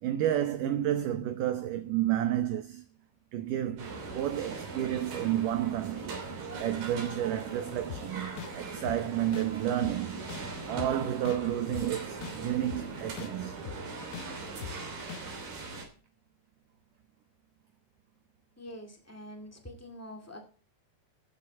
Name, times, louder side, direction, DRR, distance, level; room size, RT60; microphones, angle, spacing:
voice 1, 0.0-2.8 3.3-6.2 6.6-10.2 10.7-13.6, right 12 dB, 75° right, 2.0 m, -31 dB
sound 1, 3.8-15.9, right 3 dB, 60° right, 4.7 m, -40 dB
sound 2, 7.9-8.0 8.4-8.5 8.9-9.0 9.3-9.5 9.8-9.9 10.3-10.4 10.8-10.9 11.3-11.4 11.7-11.9 12.2-12.3 12.7-12.8 13.2-13.3 13.7-13.8 14.1-14.3 14.6-14.7 15.1-15.2, left 14 dB, 80° left, 2.7 m, -40 dB
voice 2, 18.6-20.4, equal, 20° left, 0.4 m, -45 dB
14.5 x 8.3 x 4.4 m
omnidirectional pair, 4.7 m